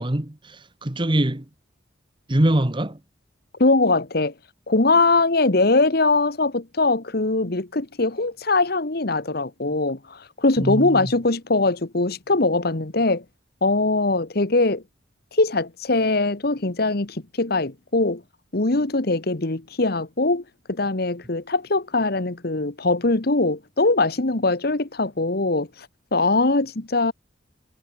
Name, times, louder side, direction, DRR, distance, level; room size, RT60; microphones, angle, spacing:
voice 1, 0.0-1.4 2.3-3.0 10.6-11.1, right 1 dB, 25° right, 1.3 m, -23 dB
voice 2, 3.6-4.3 4.7-13.2 13.6-14.8 15.3-18.2 18.5-27.1, left 2 dB, 55° left, 1.4 m, -22 dB
head